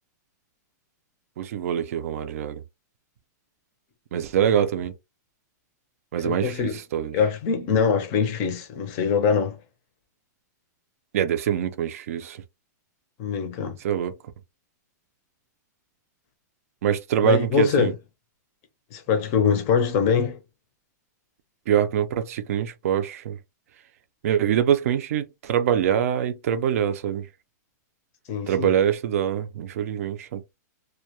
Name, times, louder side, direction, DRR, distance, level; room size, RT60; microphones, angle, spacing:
voice 1, 1.4-2.6 4.1-4.9 6.1-7.2 11.1-12.4 13.8-14.2 16.8-17.9 21.7-23.4 24.2-27.3 28.5-30.6, right 9 dB, 55° right, 0.5 m, -24 dB
voice 2, 6.2-6.8 7.1-9.6 13.2-13.8 17.2-17.9 18.9-20.4 28.3-28.7, left 6 dB, 25° left, 0.5 m, -23 dB
2.2 x 2.1 x 2.8 m
supercardioid pair, 175°, 10 cm